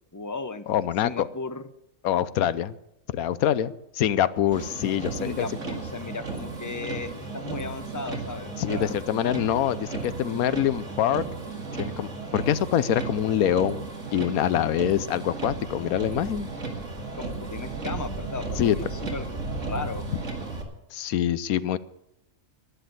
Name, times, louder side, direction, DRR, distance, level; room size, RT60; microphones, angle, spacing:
voice 1, 0.1-0.6 1.0-1.7 5.2-9.0 17.2-20.1, left 3 dB, 20° left, 10 dB, 0.5 m, -36 dB
voice 2, 0.7-1.3 2.0-2.7 3.1-5.5 8.6-11.2 11.8-13.9 14.1-16.5 18.6-18.8 20.9-21.8, left 10 dB, 85° left, 16 dB, 1.2 m, -25 dB
Motor vehicle (road), 4.5-20.6, right 3 dB, 60° right, 2.6 m, -34 dB
11.5 x 10.5 x 8.0 m, 0.85 s
omnidirectional pair, 1.5 m